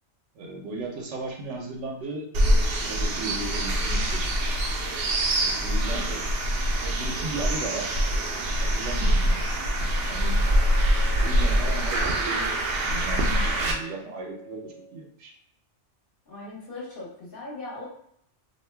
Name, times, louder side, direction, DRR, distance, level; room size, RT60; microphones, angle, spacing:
voice 1, 0.3-2.3 2.7-4.6 5.3-6.2 6.8-7.9 8.6-9.4 10.0-10.4 11.2-15.3, right 2 dB, 85° right, 1 dB, 1.0 m, -36 dB
sound 1, 2.3-13.7, right 1 dB, 65° right, 0.7 m, -24 dB
sound 2, 10.1-15.1, right 1 dB, 75° left, 1.0 m, -49 dB
voice 2, 16.3-17.9, left 2 dB, 55° left, -6 dB, 1.1 m, -39 dB
2.6 x 2.2 x 3.3 m, 0.69 s
omnidirectional pair, 1.2 m